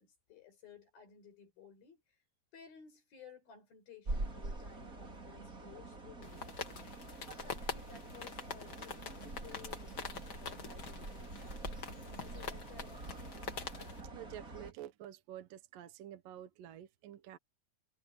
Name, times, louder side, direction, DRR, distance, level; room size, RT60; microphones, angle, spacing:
voice 1, 0.0-2.2 2.5-6.8 7.1-11.6 11.8-13.5, left 6 dB, 70° left, 7.4 m, -57 dB
sound 1, 4.0-14.7, right 2 dB, 20° right, 4.1 m, -45 dB
sound 2, 6.2-14.0, left 5 dB, 45° left, 1.4 m, -45 dB
voice 2, 14.1-17.4, right 11 dB, 70° right, 2.8 m, -49 dB
omnidirectional pair, 4.4 m